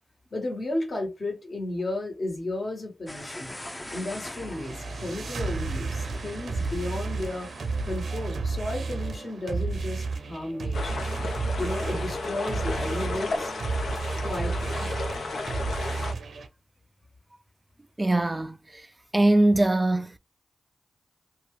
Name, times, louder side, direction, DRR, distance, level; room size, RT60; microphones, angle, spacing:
voice 1, 0.3-3.5 3.9-7.5 7.8-11.1 11.6-13.5 14.3-14.7, left 2 dB, 50° left, 1.6 m, -33 dB
sound 1, 3.1-8.3, left 1 dB, 15° left, 0.6 m, -43 dB
sound 2, 3.8-16.5, right 3 dB, 75° right, 0.6 m, -32 dB
sound 3, 10.7-16.1, left 2 dB, 75° left, 0.8 m, -33 dB
voice 2, 18.0-18.6 19.1-20.2, right 1 dB, 25° right, 0.4 m, -21 dB
2.9 x 2.3 x 3.2 m
cardioid pair, 50°, 0 cm